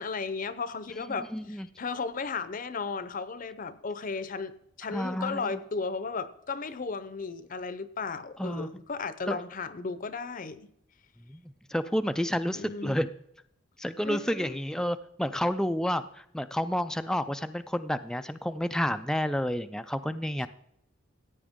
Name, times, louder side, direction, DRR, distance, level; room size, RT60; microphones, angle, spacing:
voice 1, 0.0-10.7 12.5-13.0 14.0-14.6, left 4 dB, 45° left, 0.6 m, -35 dB
voice 2, 1.3-1.7 4.9-5.6 8.4-8.8 9.3-9.4 11.3-11.4 11.7-13.1 13.8-20.5, equal, 5° left, 0.3 m, -30 dB
15.0 x 8.9 x 3.6 m
head